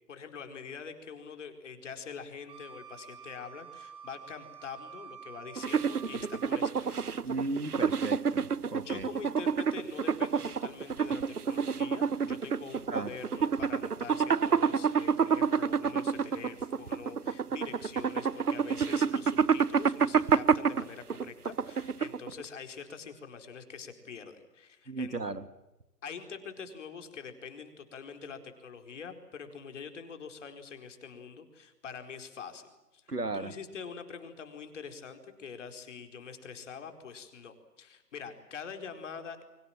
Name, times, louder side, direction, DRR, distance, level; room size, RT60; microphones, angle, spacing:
voice 1, 0.1-6.9 7.3-7.5 8.8-25.2 26.0-39.4, left 6 dB, 50° left, 7 dB, 4.6 m, -45 dB
Wind instrument woodwind instrument, 2.5-6.6, right 7 dB, 10° right, 2.1 m, -49 dB
sound 1, 5.6-22.4, right 6 dB, 70° right, 1.2 m, -28 dB
voice 2, 7.2-9.1 12.9-13.1 24.9-25.4 33.1-33.6, right 3 dB, 85° right, 12 dB, 2.3 m, -35 dB
29.5 x 24.5 x 7.6 m, 1.0 s
figure-of-eight pair, 135°, 46 cm